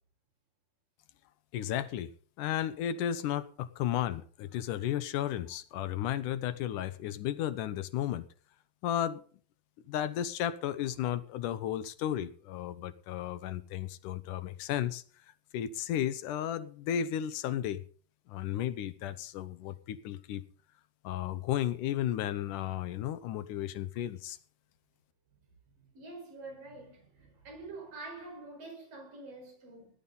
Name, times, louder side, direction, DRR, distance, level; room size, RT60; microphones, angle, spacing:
voice 1, 1.5-2.1 2.4-8.2 8.8-9.2 9.9-15.0 15.5-17.8 18.3-20.4 21.0-24.4, left 11 dB, 75° left, 2.4 m, -33 dB
voice 2, 25.8-29.9, right 3 dB, 90° right, 6.8 m, -46 dB
18.5 x 11.0 x 4.1 m
omnidirectional pair, 3.8 m